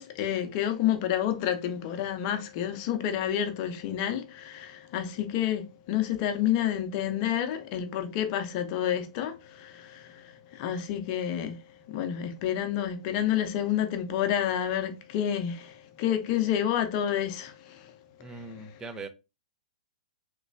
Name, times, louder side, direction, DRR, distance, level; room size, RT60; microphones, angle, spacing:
voice 1, 0.0-17.9 18.2-18.8, left 10 dB, 40° left, 0.7 m, -29 dB
voice 2, 18.2-19.1, right 3 dB, 15° right, 0.5 m, -40 dB
3.2 x 3.0 x 2.5 m
hypercardioid pair, 120°, 4 cm